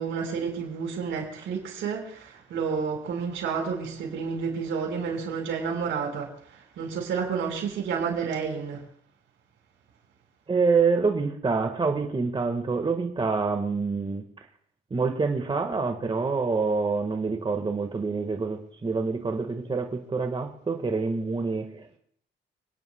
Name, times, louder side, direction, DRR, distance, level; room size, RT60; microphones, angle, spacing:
voice 1, 0.0-8.8, right 6 dB, 80° right, 4.5 m, -30 dB
voice 2, 10.5-14.5 14.9-22.0, right 4 dB, 25° right, 1.5 m, -26 dB
30.0 x 10.5 x 2.2 m
cardioid pair, 90°, 20 cm